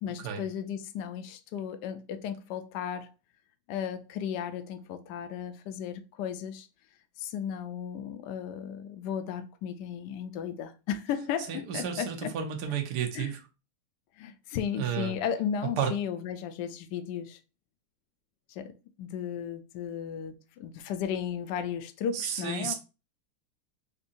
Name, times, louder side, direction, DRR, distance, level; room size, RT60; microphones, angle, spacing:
voice 1, 0.0-3.1 3.7-6.7 7.2-12.3 13.1-13.3 14.2-17.4 18.5-18.7 19.0-22.7, left 8 dB, 75° left, 1.0 m, -35 dB
voice 2, 11.5-13.4 14.7-15.1 15.8-15.9 22.1-22.7, right 8 dB, 65° right, 1.1 m, -32 dB
4.4 x 2.6 x 2.5 m
omnidirectional pair, 2.1 m